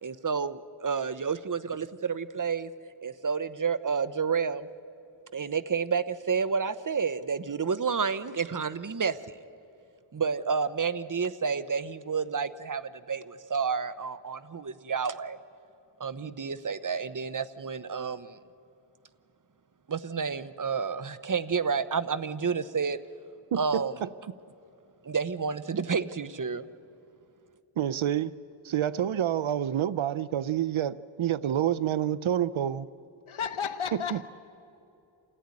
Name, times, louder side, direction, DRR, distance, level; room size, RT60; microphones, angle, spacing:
voice 1, 0.0-2.7 3.0-4.7 5.3-9.2 10.1-15.4 16.0-18.4 19.9-23.0 23.6-23.9 25.0-26.7, right 5 dB, 40° right, 14 dB, 0.8 m, -30 dB
voice 2, 23.5-24.1 27.8-28.3 28.6-32.9 34.1-34.2, right 10 dB, 75° right, 18 dB, 0.6 m, -28 dB
voice 3, 33.3-34.2, left 7 dB, 80° left, 10 dB, 1.2 m, -32 dB
27.5 x 14.5 x 9.7 m, 2.7 s
wide cardioid pair, 55°, 48 cm